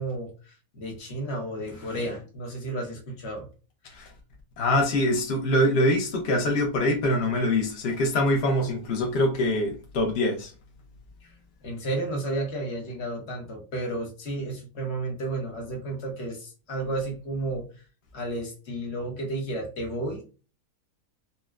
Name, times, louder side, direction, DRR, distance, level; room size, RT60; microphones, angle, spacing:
voice 1, 0.0-3.5 11.6-17.7 18.1-20.2, right 2 dB, 45° left, 0 dB, 1.0 m, -32 dB
voice 2, 4.6-10.5, left 1 dB, 65° left, 1 dB, 0.6 m, -24 dB
4.1 x 2.1 x 2.3 m, 0.35 s
omnidirectional pair, 1.8 m